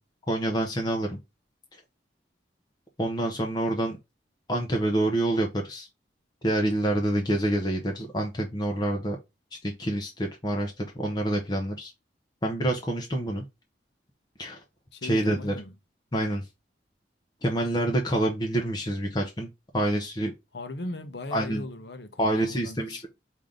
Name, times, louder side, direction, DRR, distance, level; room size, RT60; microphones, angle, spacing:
voice 1, 0.3-1.2 3.0-4.0 4.5-5.9 6.4-9.2 9.6-11.9 12.4-13.4 14.4-14.6 15.0-15.5 16.1-16.5 17.4-19.5 19.7-20.3 21.3-21.6 22.2-23.1, right 1 dB, 25° left, 0.7 m, -27 dB
voice 2, 14.9-15.7 20.5-23.1, left 2 dB, 70° left, 0.8 m, -38 dB
5.0 x 2.8 x 3.7 m
head